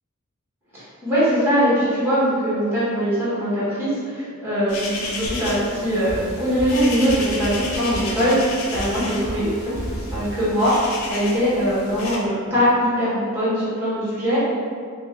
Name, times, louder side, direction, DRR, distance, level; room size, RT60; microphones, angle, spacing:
voice 1, 0.7-9.8 10.1-14.5, equal, 10° right, -11 dB, 1.1 m, -21 dB
sound 1, 4.7-12.2, left 2 dB, 70° left, 0.5 m, -33 dB
Drum kit, 5.3-10.7, right 1 dB, 60° right, 0.6 m, -34 dB
2.8 x 2.6 x 3.3 m, 2.2 s
head